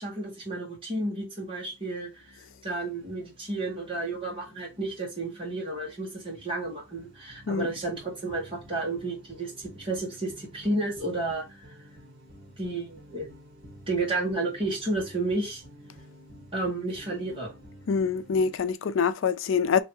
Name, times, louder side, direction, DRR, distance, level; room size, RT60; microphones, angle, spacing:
voice 1, 0.0-11.8 12.6-13.3 13.9-15.6 16.5-17.5, right 2 dB, 30° right, 1.7 m, -32 dB
sound 1, 1.4-18.6, equal, 55° right, 1.5 m, -52 dB
voice 2, 17.9-19.8, left 6 dB, 85° left, 0.4 m, -25 dB
3.2 x 2.7 x 4.6 m
head